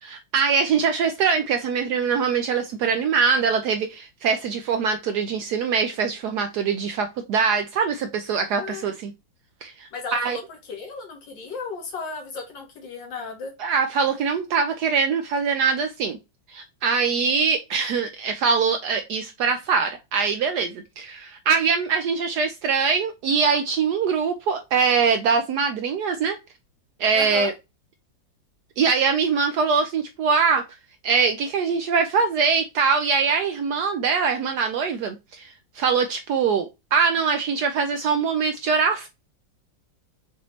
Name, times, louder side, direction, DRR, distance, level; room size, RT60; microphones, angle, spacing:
voice 1, 0.0-9.1 9.6-10.4 13.6-16.2 16.5-26.4 27.0-27.5 28.8-30.6 31.0-39.1, right 5 dB, 75° right, 1.0 m, -23 dB
voice 2, 9.9-10.4 10.7-13.5 27.1-27.5, left 4 dB, 75° left, 2.2 m, -34 dB
6.1 x 3.1 x 2.7 m
omnidirectional pair, 2.1 m